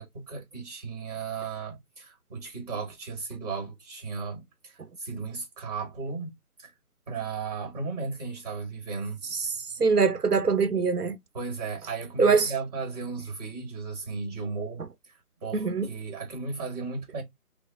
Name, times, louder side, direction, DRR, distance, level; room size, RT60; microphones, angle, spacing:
voice 1, 0.0-6.3 6.6-6.7 7.1-9.2 11.3-14.8 15.4-17.2, right 4 dB, 25° right, 1.7 m, -35 dB
voice 2, 9.8-11.2 12.2-12.5 15.5-15.9, right 5 dB, 85° right, 0.9 m, -23 dB
4.7 x 2.0 x 3.5 m
figure-of-eight pair, 160°, 45 cm